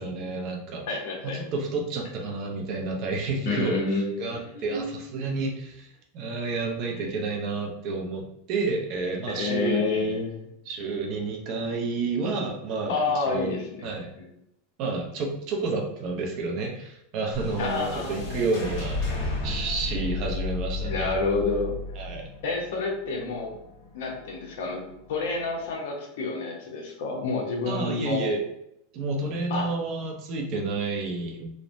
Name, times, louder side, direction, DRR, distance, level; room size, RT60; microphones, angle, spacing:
voice 1, 0.0-0.9 1.2-10.1 10.7-13.6 13.8-14.1 14.8-21.1 22.0-22.3 27.7-28.4 28.9-31.4, right 3 dB, 45° right, 1 dB, 0.6 m, -30 dB
voice 2, 0.9-1.5 3.4-4.9 9.3-10.4 12.9-13.9 14.2-14.3 17.6-18.5 20.8-21.8 22.4-23.5 23.9-24.8 25.1-28.3 29.5-29.7, left 3 dB, 75° left, 0 dB, 0.8 m, -29 dB
sound 1, 17.3-25.7, left 3 dB, 50° left, 1.1 m, -34 dB
3.1 x 2.1 x 2.6 m, 0.79 s
supercardioid pair, 145°, 0 cm